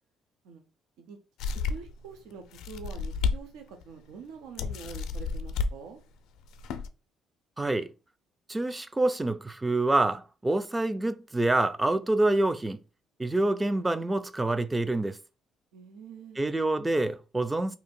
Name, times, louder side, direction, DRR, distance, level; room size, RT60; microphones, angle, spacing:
sound 1, 1.4-2.0 2.5-3.4 3.8-3.9 4.6-5.7 6.4-6.9, left 5 dB, 75° left, 0.4 m, -31 dB
voice 1, 1.7-6.0 15.7-16.4, right 5 dB, 85° right, 0.6 m, -45 dB
voice 2, 7.6-7.9 8.5-12.8 13.2-15.2 16.4-17.8, right 2 dB, 15° right, 0.3 m, -26 dB
2.8 x 2.5 x 4.2 m
cardioid pair, 115°, 0 cm